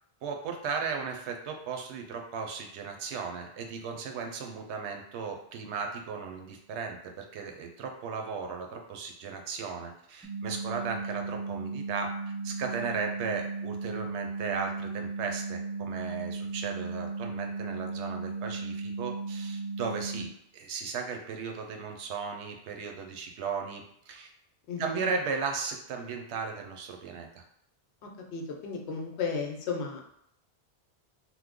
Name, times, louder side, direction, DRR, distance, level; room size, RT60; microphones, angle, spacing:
voice 1, 0.2-12.1 12.4-24.3 24.8-27.4, right 5 dB, 85° right, 3 dB, 0.9 m, -36 dB
sound 1, 10.2-20.2, right 3 dB, 5° left, 0.8 m, -36 dB
voice 2, 24.7-25.0 28.0-30.0, left 5 dB, 75° left, 1 dB, 0.9 m, -34 dB
3.0 x 2.0 x 3.6 m, 0.72 s
omnidirectional pair, 1.1 m